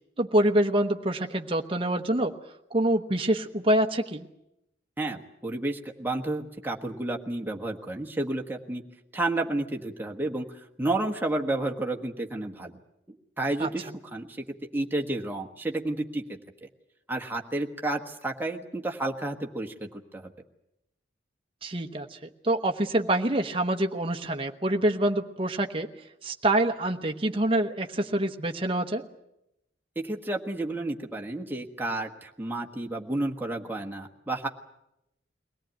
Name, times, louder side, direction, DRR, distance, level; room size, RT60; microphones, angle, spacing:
voice 1, 0.2-2.3 2.7-4.3 13.6-13.7 21.6-22.2 22.4-25.9 26.2-29.0, right 1 dB, 30° right, 4 dB, 1.0 m, -26 dB
voice 2, 5.0-8.8 9.1-12.8 13.1-14.5 14.7-16.7 17.1-20.3 29.9-34.5, right 2 dB, 10° right, 1 dB, 1.4 m, -31 dB
22.5 x 18.0 x 9.2 m, 0.86 s
head